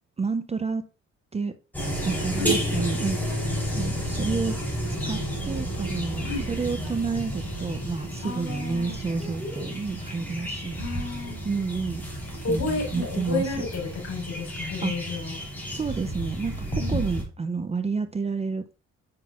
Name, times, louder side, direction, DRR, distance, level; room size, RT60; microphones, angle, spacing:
voice 1, 0.2-0.8 1.3-1.5 2.0-3.4 3.7-4.6 5.1-10.8 11.4-12.0 12.5-13.5 14.8-14.9 15.7-18.8, right 4 dB, 20° right, 0.5 m, -30 dB
sound 1, 1.7-17.2, equal, 5° left, 3.3 m, -31 dB
voice 2, 8.2-9.0 10.8-11.5 12.4-15.4 16.7-17.1, left 3 dB, 60° left, 4.0 m, -31 dB
7.6 x 5.9 x 2.4 m
cardioid pair, 90°, 30 cm